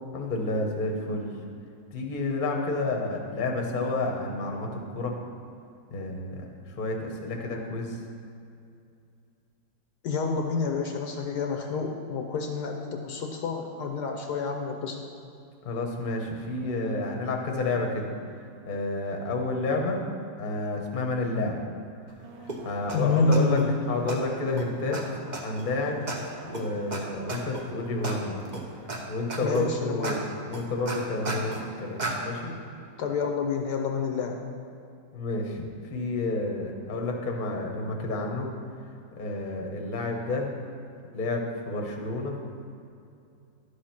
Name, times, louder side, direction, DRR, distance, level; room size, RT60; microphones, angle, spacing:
voice 1, 0.1-1.3 1.9-5.1 5.9-8.0 15.6-18.1 18.7-20.0 20.4-21.6 22.6-23.6 23.9-25.0 25.4-26.0 26.4-28.4 29.1-30.2 30.5-32.5 35.1-35.6 35.9-38.5 39.2-40.5 41.1-42.3, left 2 dB, 35° left, 1 dB, 0.9 m, -30 dB
voice 2, 10.0-15.0 22.9-23.7 29.4-30.3 33.0-34.4, left 4 dB, 70° left, 3 dB, 1.2 m, -28 dB
sound 1, 22.2-29.7, right 3 dB, 75° right, 1.5 m, -49 dB
sound 2, 22.5-22.6 22.9-23.0 23.3-23.6 24.1-24.2 24.6-24.7 24.9-25.0 25.3-25.6 26.1-26.2 26.5-26.6 26.9-27.0 27.3-27.6 28.0-28.2 28.5-29.0 29.3-29.6 30.0-30.2 30.5-31.6 32.0-32.1, right 2 dB, 40° right, 0.7 m, -33 dB
11.5 x 5.0 x 5.8 m, 2.5 s
omnidirectional pair, 2.0 m